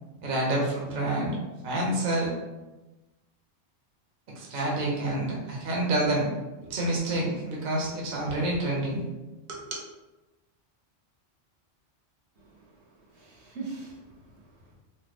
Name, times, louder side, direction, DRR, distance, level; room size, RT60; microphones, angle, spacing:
voice 1, 0.2-1.4 1.6-2.3 4.4-6.3 6.6-9.0 9.5-9.6, right 1 dB, 50° right, -3 dB, 0.7 m, -28 dB
voice 2, 12.4-14.7, right 4 dB, 65° right, -3 dB, 1.0 m, -43 dB
2.8 x 2.2 x 3.3 m, 1.1 s
omnidirectional pair, 1.3 m